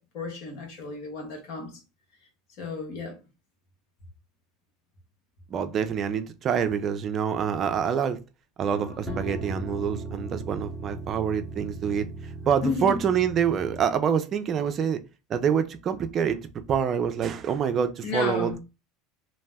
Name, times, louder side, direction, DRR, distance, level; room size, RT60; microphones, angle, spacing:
voice 1, 0.0-1.7 2.6-3.2 12.6-13.0 18.0-18.6, left 4 dB, 65° left, 1.1 m, -32 dB
voice 2, 5.5-8.2 8.6-12.1 12.4-15.0 15.3-16.4 16.7-18.6, right 7 dB, 35° right, 0.4 m, -26 dB
sound 1, 8.7-13.8, right 3 dB, 5° left, 0.9 m, -37 dB
2.6 x 2.0 x 3.4 m
supercardioid pair, 120°, 0 cm